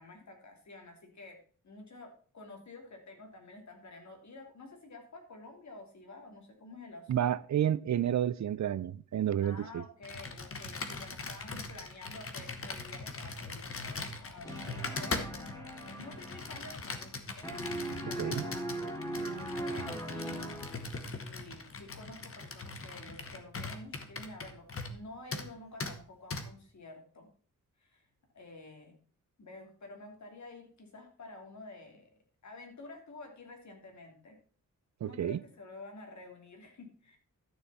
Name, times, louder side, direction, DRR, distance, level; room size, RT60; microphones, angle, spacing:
voice 1, 0.0-1.4 1.6-7.1 9.4-17.5 18.0-18.6 19.7-20.6 21.1-27.3 27.8-28.1 28.3-29.0 29.4-32.1 32.4-34.4 35.0-37.2, left 2 dB, 60° left, 3.0 m, -50 dB
voice 2, 7.1-9.8 18.2-18.4 35.0-35.4, right 10 dB, 60° right, 0.5 m, -30 dB
Computer keyboard, 10.0-25.0 25.3-25.5 25.8-25.9 26.3-26.4, left 3 dB, 45° left, 1.2 m, -41 dB
sound 1, 14.4-17.2 17.4-21.0, right 1 dB, 10° left, 2.4 m, -40 dB
12.0 x 6.8 x 4.1 m
wide cardioid pair, 135°, 32 cm